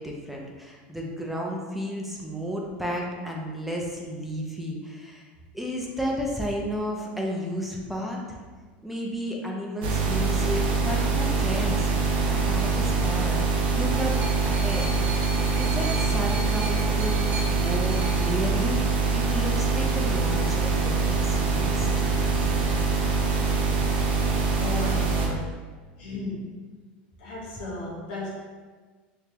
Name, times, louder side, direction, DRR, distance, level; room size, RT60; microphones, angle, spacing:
voice 1, 0.0-5.2 5.5-8.4 8.8-11.9 12.2-14.1 14.4-14.8 15.6-18.8 19.1-22.3, equal, 5° right, -2 dB, 0.6 m, -32 dB
sound 1, 9.8-25.3, right 4 dB, 80° right, 0.7 m, -24 dB
sound 2, 13.9-19.3 20.2-20.3, right 2 dB, 35° right, 0.9 m, -38 dB
voice 2, 24.5-25.6 26.0-26.7 27.2-28.3, left 2 dB, 80° left, -4 dB, 1.0 m, -35 dB
3.3 x 2.8 x 3.4 m, 1.4 s
supercardioid pair, 105°, 5 cm